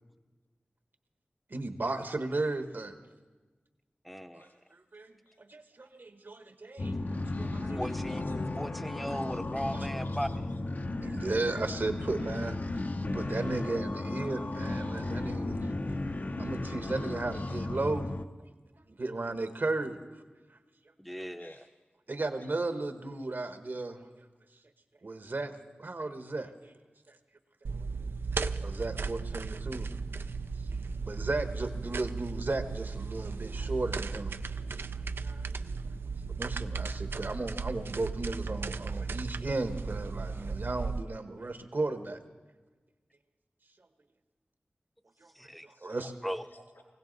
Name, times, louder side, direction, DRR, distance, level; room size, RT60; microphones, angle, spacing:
voice 1, 1.5-2.9 4.3-6.9 7.4-7.8 9.7-9.9 11.0-12.6 13.1-15.6 16.4-18.1 19.0-20.0 22.1-24.0 25.0-25.5 25.8-26.7 27.1-27.2 27.7-27.9 28.6-29.9 30.7-34.3 35.2-35.5 36.4-42.2 45.2-45.3 45.6-46.1, right 2 dB, 65° right, 8 dB, 1.1 m, -35 dB
voice 2, 4.0-4.4 7.7-8.2 8.6-10.3 21.0-21.7 45.3-45.7 46.0-46.5, equal, ahead, 10 dB, 0.6 m, -37 dB
sound 1, 6.8-18.2, left 2 dB, 50° left, 0.6 m, -35 dB
voice 3, 8.1-8.5 8.9-9.4 10.0-10.6 11.3-12.1 21.4-21.7 22.4-22.7 45.7-46.8, left 1 dB, 75° left, -1 dB, 3.4 m, -58 dB
sound 2, 27.6-41.0, right 4 dB, 90° right, 0.4 m, -36 dB
20.5 x 16.5 x 4.0 m, 1.3 s
wide cardioid pair, 55°, 4 cm